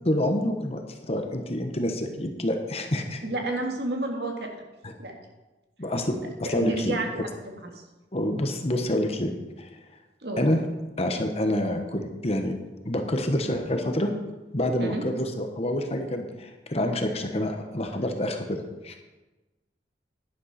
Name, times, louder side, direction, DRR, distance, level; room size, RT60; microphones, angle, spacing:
voice 1, 0.0-3.2 4.8-4.9 5.8-6.9 8.1-9.3 9.6-9.7 10.4-10.6 11.0-12.5 12.8-14.1 14.5-18.9, left 1 dB, 35° left, 5 dB, 1.1 m, -27 dB
voice 2, 3.2-4.5 5.0-5.1 6.4-7.1 7.6-7.7 10.2-10.4 14.8-15.0, right 2 dB, 65° right, 2 dB, 1.9 m, -30 dB
11.0 x 10.5 x 4.2 m, 1.1 s
head